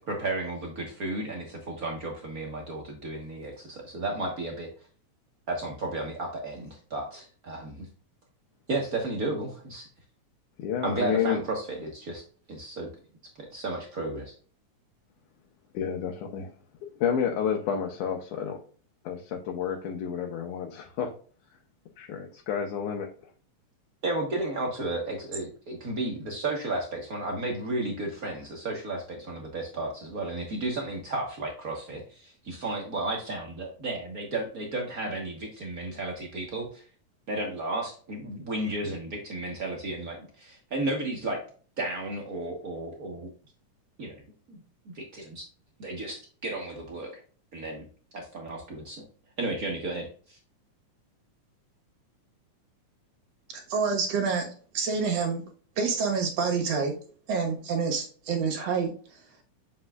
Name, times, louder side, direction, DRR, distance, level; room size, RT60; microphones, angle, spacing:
voice 1, 0.0-4.7 5.5-7.9 8.7-9.9 10.8-12.2 12.5-12.9 13.3-14.3 24.0-36.8 37.3-41.4 41.8-43.3 44.0-44.2 44.5-45.4 45.8-47.2 47.5-47.9 48.1-49.0 49.4-50.4, right 2 dB, 80° right, 0 dB, 0.8 m, -33 dB
voice 2, 10.6-11.4 15.7-16.5 17.0-18.6 19.0-21.1 22.0-23.1, left 8 dB, 80° left, 1 dB, 2.3 m, -30 dB
voice 3, 53.5-54.5 54.7-55.4 55.8-56.9 57.3-58.9, right 5 dB, 60° right, 3 dB, 2.2 m, -27 dB
7.7 x 5.5 x 2.3 m, 0.41 s
omnidirectional pair, 3.5 m